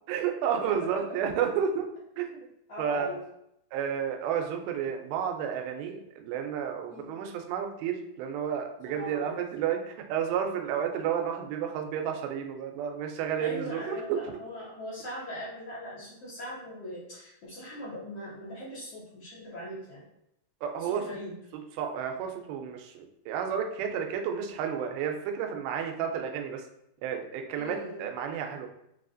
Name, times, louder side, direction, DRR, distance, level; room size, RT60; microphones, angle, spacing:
voice 1, 0.1-1.9 2.2-2.5 2.8-3.1 3.7-14.2 20.6-21.0 21.8-26.6 27.0-28.7, right 8 dB, 85° right, 4 dB, 2.5 m, -31 dB
voice 2, 2.7-3.2 6.9-7.2 8.9-9.4 13.4-20.0 20.8-21.3 27.6-28.0, equal, 75° left, -9 dB, 1.4 m, -40 dB
5.9 x 2.4 x 2.5 m, 0.78 s
omnidirectional pair, 4.4 m